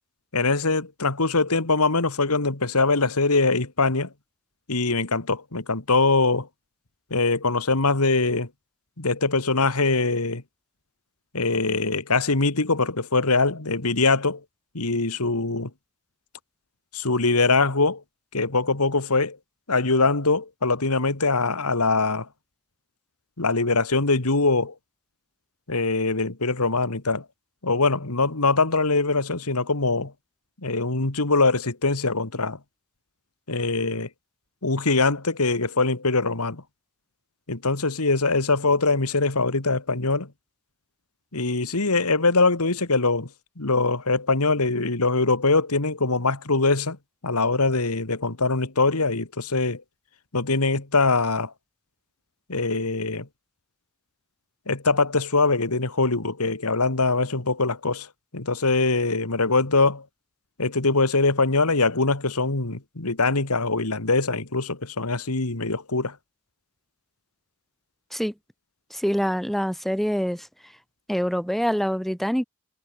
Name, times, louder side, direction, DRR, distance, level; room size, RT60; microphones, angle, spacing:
voice 1, 0.3-4.1 4.7-6.5 7.1-8.5 9.0-10.4 11.3-14.4 14.7-15.7 16.9-18.0 18.3-19.4 19.7-22.3 23.4-24.7 25.7-27.2 27.6-30.1 30.6-32.6 33.5-34.1 34.6-36.6 37.5-40.3 41.3-43.3 43.6-47.0 47.2-49.8 50.3-51.5 52.5-53.3 54.7-58.1 58.3-60.0 60.6-66.2, left 3 dB, 85° left, 2.3 m, -23 dB
voice 2, 68.9-70.5 71.1-72.4, equal, ahead, 2.0 m, -25 dB
head